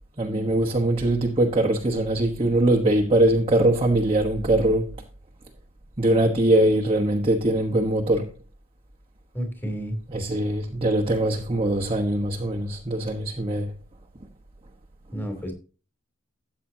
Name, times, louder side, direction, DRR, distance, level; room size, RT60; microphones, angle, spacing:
voice 1, 0.2-4.9 6.0-8.3 10.1-13.7, right 1 dB, 30° right, 1.2 m, -22 dB
voice 2, 9.3-9.9 15.1-15.5, equal, 10° left, 3.0 m, -30 dB
13.5 x 8.2 x 2.8 m
head